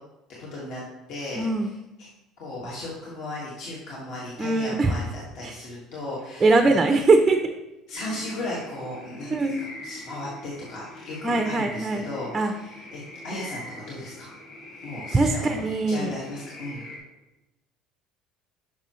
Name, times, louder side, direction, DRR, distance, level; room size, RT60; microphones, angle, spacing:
voice 1, 0.4-0.8 1.1-1.7 2.4-7.0 7.9-14.3 14.8-16.8, left 1 dB, 55° left, -5 dB, 1.8 m, -36 dB
voice 2, 1.4-1.7 4.4-4.9 5.4-5.6 6.4-7.4 9.3-9.6 11.2-12.5 15.1-16.1, right 3 dB, 15° right, 5 dB, 0.5 m, -22 dB
sound 1, 7.9-17.0, left 1 dB, 75° left, 2.2 m, -42 dB
9.4 x 6.1 x 3.1 m, 0.96 s
cardioid pair, 165°, 0 cm